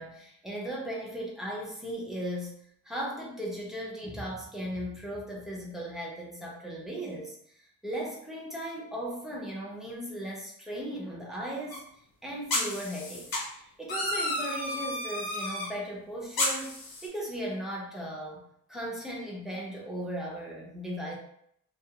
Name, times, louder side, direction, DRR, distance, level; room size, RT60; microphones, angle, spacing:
voice 1, 0.0-2.6 2.8-11.8 12.2-21.2, right 1 dB, ahead, -4 dB, 0.6 m, -37 dB
sound 1, 11.7-11.8 12.5-13.4 13.9-15.7 16.3-17.1, left 1 dB, 85° left, 1.0 m, -31 dB
2.4 x 2.3 x 2.8 m, 0.72 s
wide cardioid pair, 125°, 35 cm